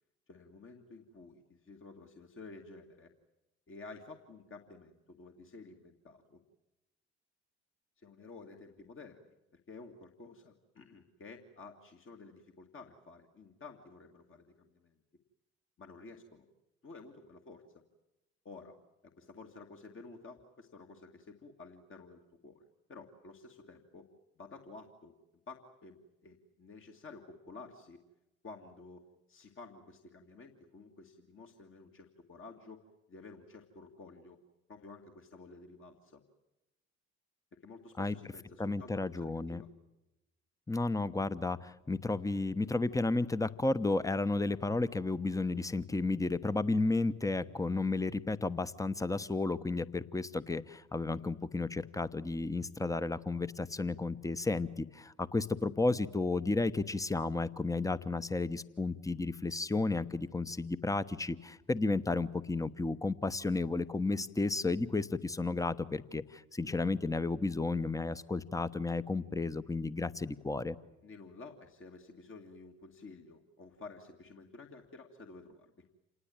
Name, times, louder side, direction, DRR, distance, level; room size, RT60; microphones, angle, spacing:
voice 1, 0.3-3.1 3.7-6.4 8.0-9.3 9.7-15.0 15.8-16.5 16.8-17.8 18.4-18.8 19.0-22.6 22.9-24.1 24.4-25.1 25.5-28.0 28.4-29.0 29.3-32.8 33.1-34.4 34.7-36.2 37.6-39.7 71.0-75.8, left 3 dB, 40° left, 2 dB, 2.2 m, -52 dB
voice 2, 38.6-39.6 40.7-70.8, left 3 dB, 10° left, 13 dB, 1.1 m, -32 dB
27.5 x 19.5 x 9.0 m, 0.96 s
hypercardioid pair, 60°, 32 cm